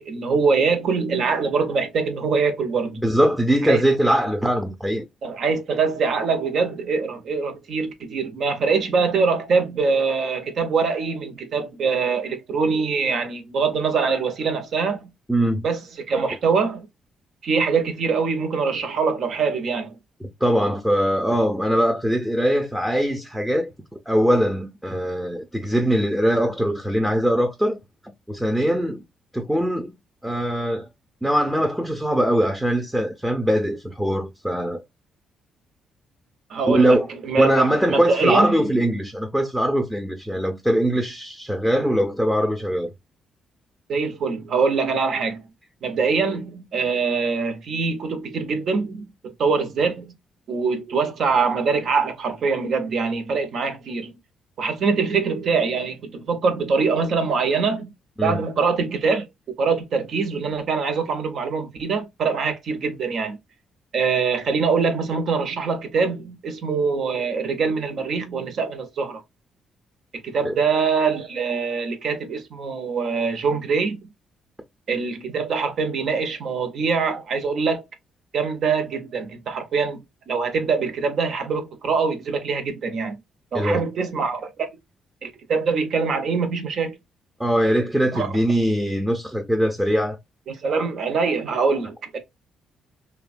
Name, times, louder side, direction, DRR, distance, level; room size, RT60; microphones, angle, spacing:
voice 1, 0.0-3.0 3.6-3.8 5.2-15.1 15.6-16.9 17.4-19.9 36.5-38.6 43.9-45.4 45.8-50.1 50.5-54.1 54.6-57.9 58.2-59.3 59.6-63.4 63.9-69.2 70.2-74.0 74.9-77.8 78.3-80.0 80.3-83.2 83.5-84.7 85.2-87.0 88.1-88.3 90.5-92.2, right 5 dB, 60° right, 0.7 m, -23 dB
voice 2, 3.0-5.1 15.3-15.6 20.2-23.7 24.1-27.8 28.0-29.0 29.3-29.9 30.2-30.9 31.2-34.8 36.7-37.1 37.4-42.9 58.2-58.4 70.4-70.5 83.5-83.8 87.4-90.2 90.8-90.9, equal, 5° right, 0.6 m, -21 dB
2.7 x 2.2 x 2.5 m
cardioid pair, 90°, 0 cm